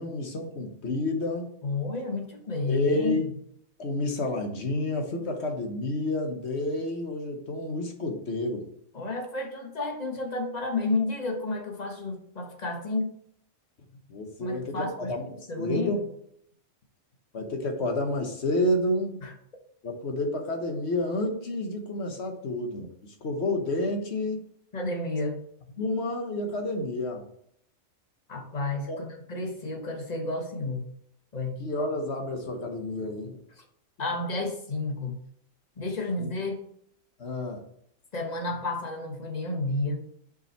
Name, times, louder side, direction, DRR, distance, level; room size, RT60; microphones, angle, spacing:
voice 1, 0.0-1.5 2.7-3.3 3.8-8.7 14.1-16.0 17.3-19.2 19.8-24.4 25.8-27.2 28.9-29.0 31.6-33.4 36.2-36.3 37.2-37.6, left 1 dB, 55° left, 4 dB, 1.3 m, -30 dB
voice 2, 1.6-3.2 8.9-13.1 14.4-15.1 15.5-16.0 19.2-19.3 24.7-25.4 28.3-30.9 31.3-31.6 34.0-35.2 35.8-36.6 38.1-40.0, left 2 dB, 30° left, 2 dB, 1.2 m, -31 dB
5.5 x 5.4 x 4.4 m, 0.69 s
omnidirectional pair, 1.4 m